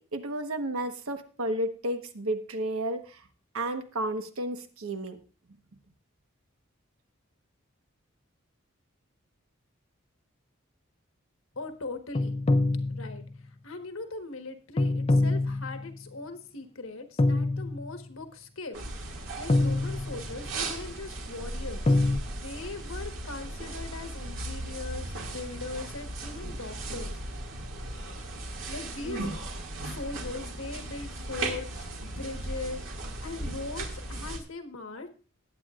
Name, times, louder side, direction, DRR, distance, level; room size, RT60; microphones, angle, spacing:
voice 1, 0.0-3.2 3.5-5.2, right 1 dB, 85° right, 7 dB, 1.2 m, -32 dB
voice 2, 11.6-12.4 12.9-18.8 19.1-22.0 22.4-27.2 28.7-29.5 29.8-35.1, left 3 dB, 75° left, 6 dB, 1.4 m, -40 dB
sound 1, 12.1-13.4 14.8-16.0 17.2-18.1 19.5-20.5 21.9-22.2, left 2 dB, 30° left, 0.5 m, -25 dB
sound 2, 18.7-34.4, right 2 dB, 65° right, 2.3 m, -37 dB
19.5 x 8.7 x 2.5 m, 0.36 s
head